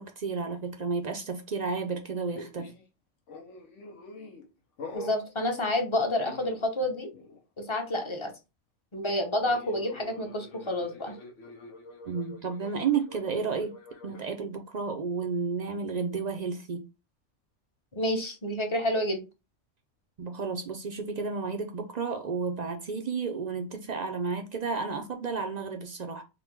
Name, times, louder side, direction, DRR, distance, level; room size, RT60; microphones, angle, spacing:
voice 1, 0.0-2.7 12.1-13.7 14.0-16.8 20.2-26.2, right 5 dB, 50° right, 0.5 m, -32 dB
sound 1, 2.3-2.8 3.3-4.5 4.8-5.3 6.0-6.9 7.1-7.4 9.4-14.3, left 2 dB, 80° left, 1.3 m, -45 dB
voice 2, 4.9-7.1 7.6-8.3 8.9-11.2 17.9-19.3, left 1 dB, 30° left, 0.8 m, -29 dB
3.8 x 2.1 x 4.4 m
omnidirectional pair, 1.2 m